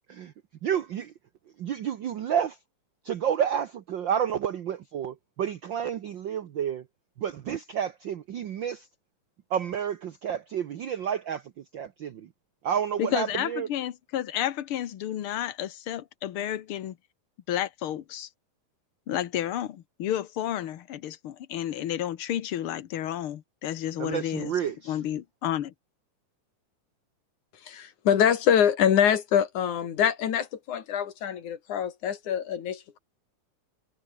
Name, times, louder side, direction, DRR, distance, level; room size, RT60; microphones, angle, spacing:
voice 1, 0.6-1.1 1.6-2.6 3.0-6.8 7.2-8.9 9.5-12.3 12.6-13.7 24.0-25.0, right 8 dB, 75° right, 1.1 m, -30 dB
voice 2, 13.0-17.0 17.5-18.3 19.1-24.5 24.9-25.7, left 11 dB, 60° left, 1.6 m, -31 dB
voice 3, 27.7-33.0, left 9 dB, 80° left, 3.6 m, -24 dB
omnidirectional pair, 3.4 m